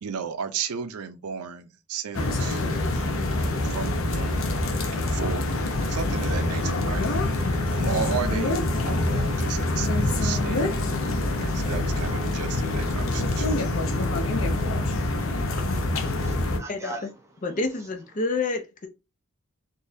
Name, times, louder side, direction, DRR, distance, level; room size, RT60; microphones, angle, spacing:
voice 1, 0.0-2.6 2.9-4.5 4.9-5.6 5.9-7.4 7.7-10.6 11.3-13.5, right 7 dB, 90° right, 0.5 m, -34 dB
sound 1, 2.1-16.6, left 2 dB, 70° left, 0.7 m, -25 dB
voice 2, 15.7-17.9, right 2 dB, 15° right, 0.7 m, -42 dB
voice 3, 17.4-18.9, left 3 dB, 35° left, 0.5 m, -28 dB
3.9 x 2.6 x 2.6 m
head